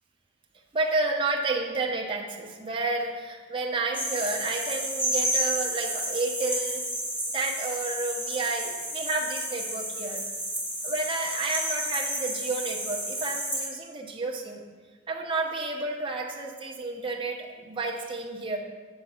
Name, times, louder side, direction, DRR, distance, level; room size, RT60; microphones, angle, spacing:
voice 1, 0.7-6.8 7.3-10.2 10.8-14.6 15.1-18.6, right 3 dB, 25° right, -1 dB, 0.8 m, -31 dB
sound 1, 3.9-13.7, right 1 dB, 10° left, 1.6 m, -31 dB
7.9 x 4.0 x 5.6 m, 1.4 s
head